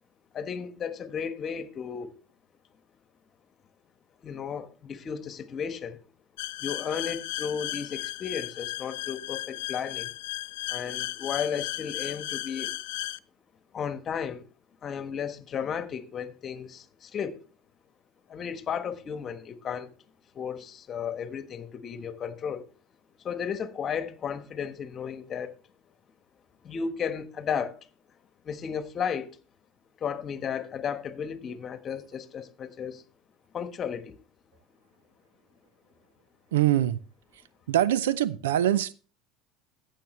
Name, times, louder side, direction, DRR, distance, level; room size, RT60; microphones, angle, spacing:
voice 1, 0.3-2.1 4.2-6.0 6.6-10.1 10.7-12.7 13.7-14.5 14.8-17.4 18.3-19.9 20.3-22.7 23.2-25.6 26.6-27.8 28.4-29.4 30.0-33.0 33.5-34.2, left 7 dB, 40° left, 1.3 m, -34 dB
sound 1, 6.4-13.2, left 18 dB, 75° left, 0.4 m, -35 dB
voice 2, 36.5-37.0 37.7-38.9, right 12 dB, 80° right, 0.5 m, -23 dB
14.5 x 7.5 x 3.2 m
hypercardioid pair, 80°, 0 cm